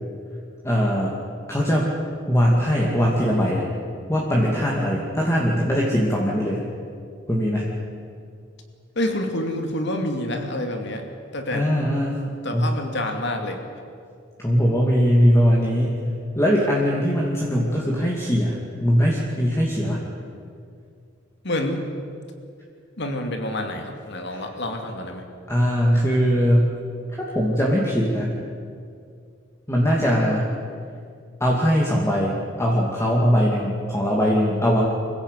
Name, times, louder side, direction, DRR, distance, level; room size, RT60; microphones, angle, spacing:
voice 1, 0.6-1.1 1.5-1.9 2.3-3.7 4.1-6.6 7.3-7.7 11.5-12.2 12.5-12.7 14.4-15.9 16.3-20.0 24.3-24.5 25.5-26.7 27.2-28.4 29.7-30.5 31.4-34.9, equal, 15° left, -3 dB, 2.5 m, -21 dB
voice 2, 9.0-11.0 11.3-11.6 12.4-13.6 21.4-21.8 23.0-25.2, left 1 dB, 65° left, 4 dB, 2.7 m, -27 dB
25.0 x 16.0 x 8.3 m, 2.3 s
head